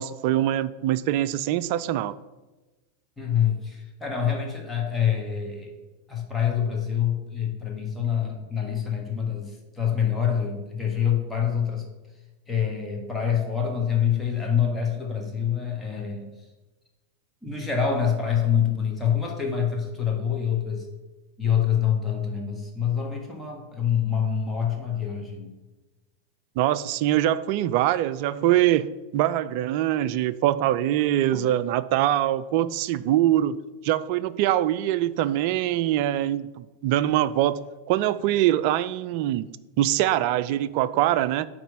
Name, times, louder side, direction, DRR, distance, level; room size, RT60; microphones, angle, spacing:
voice 1, 0.0-2.1 26.6-28.9 29.1-37.6 37.9-39.5 39.8-41.5, right 13 dB, 45° right, 0.3 m, -23 dB
voice 2, 3.2-5.8 6.1-11.9 12.5-16.5 17.4-20.9 21.4-25.5 31.3-31.5, left 8 dB, 5° left, 1.4 m, -26 dB
9.2 x 3.1 x 5.3 m
figure-of-eight pair, 90°, 0 cm